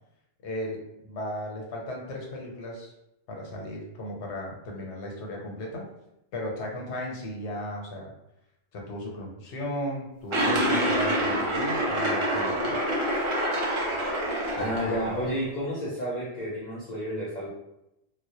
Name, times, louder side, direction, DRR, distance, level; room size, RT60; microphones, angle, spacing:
voice 1, 0.4-2.9 3.3-5.9 6.3-8.1 8.7-12.8 14.6-15.3, left 1 dB, 85° left, -1 dB, 0.9 m, -36 dB
sound 1, 10.3-15.3, right 1 dB, 45° right, 0.4 m, -26 dB
voice 2, 14.6-17.5, equal, 50° left, -7 dB, 0.6 m, -31 dB
2.2 x 2.0 x 2.7 m, 0.88 s
omnidirectional pair, 1.1 m